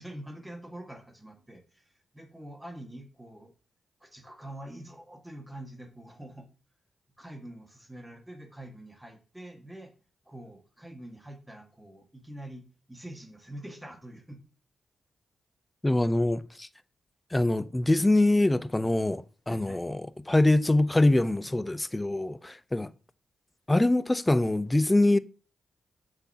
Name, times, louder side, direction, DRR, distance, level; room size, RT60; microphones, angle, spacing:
voice 1, 0.0-3.5 4.0-6.5 7.2-9.9 10.3-14.4 19.5-19.8, right 1 dB, 10° right, 1.8 m, -45 dB
voice 2, 15.8-16.7 17.3-20.0 20.3-22.9 23.7-25.2, left 2 dB, 15° left, 0.5 m, -24 dB
7.8 x 6.0 x 2.9 m
supercardioid pair, 55°, 0 cm